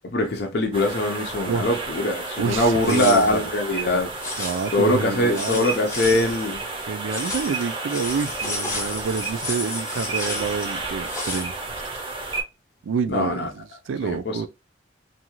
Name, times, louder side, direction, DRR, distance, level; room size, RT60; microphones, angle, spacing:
voice 1, 0.0-4.1 4.7-6.6 13.1-13.5 14.0-14.5, left 1 dB, 55° left, 0.5 m, -22 dB
sound 1, 0.7-12.4, right 3 dB, 25° right, 0.6 m, -32 dB
voice 2, 2.4-3.4 4.4-5.7 6.9-11.5 12.8-14.5, right 5 dB, 80° right, 0.3 m, -28 dB
sound 2, 2.8-3.6 4.2-5.0 5.3-6.5 7.1-11.4, left 2 dB, 15° left, 0.7 m, -32 dB
2.5 x 2.3 x 2.9 m
head